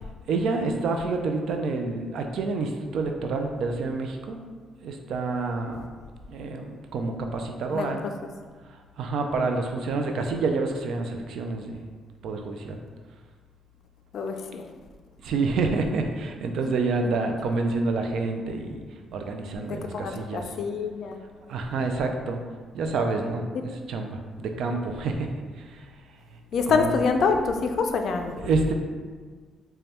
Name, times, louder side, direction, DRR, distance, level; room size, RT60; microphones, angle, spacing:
voice 1, 0.3-4.4 4.8-5.9 6.3-8.0 8.6-11.8 12.2-12.8 15.2-20.5 21.5-22.4 22.7-25.3 25.5-25.9 26.7-27.0 28.4-28.7, right 3 dB, 75° right, 4 dB, 0.4 m, -28 dB
voice 2, 7.7-8.1 14.1-14.6 19.6-21.2 26.5-28.3, left 5 dB, 65° left, 5 dB, 0.4 m, -26 dB
5.1 x 2.2 x 2.9 m, 1.5 s
cardioid pair, 90°, 0 cm